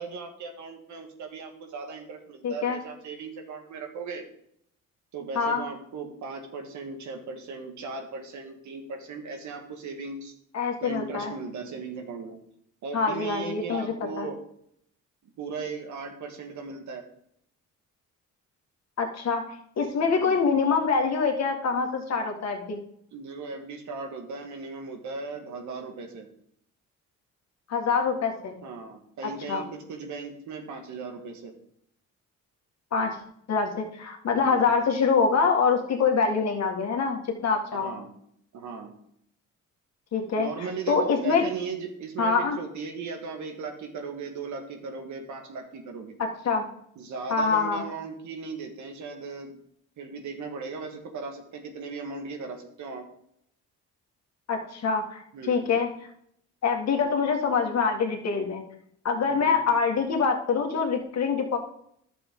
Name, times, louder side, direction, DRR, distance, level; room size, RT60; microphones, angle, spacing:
voice 1, 0.0-4.2 5.1-10.3 10.8-12.4 12.8-14.4 15.2-17.1 20.1-20.4 23.1-26.3 28.6-31.5 34.4-34.7 37.7-38.1 38.5-38.9 40.4-46.2 46.9-49.5 50.0-53.0 55.3-55.6 59.3-59.6, right 4 dB, 75° right, 4 dB, 1.7 m, -37 dB
voice 2, 2.4-2.8 5.4-5.6 10.5-11.3 12.9-14.3 19.0-19.4 19.8-22.8 27.7-28.6 29.5-29.6 32.9-33.2 33.5-37.9 40.1-41.4 42.2-42.6 46.2-46.6 47.3-47.8 54.5-55.9 56.6-58.6 59.0-61.6, left 5 dB, 60° left, 2 dB, 1.9 m, -25 dB
11.5 x 6.9 x 3.8 m, 0.70 s
cardioid pair, 90°, 30 cm